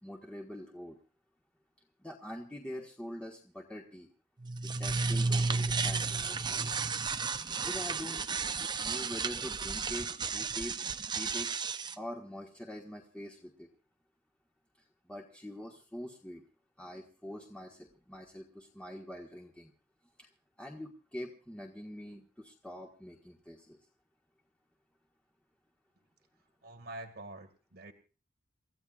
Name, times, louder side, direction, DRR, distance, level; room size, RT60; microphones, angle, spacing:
voice 1, 0.0-1.0 2.0-4.1 4.8-6.7 7.6-8.2 8.8-10.8 11.1-11.5 11.9-13.7 15.1-16.4 16.8-19.7 20.2-20.3 20.6-23.8, equal, 5° left, -1 dB, 1.5 m, -44 dB
sound 1, 4.4-11.9, right 4 dB, 25° right, 0.7 m, -33 dB
voice 2, 26.6-27.9, right 2 dB, 60° right, 5 dB, 1.9 m, -46 dB
29.0 x 14.5 x 2.4 m, 0.35 s
head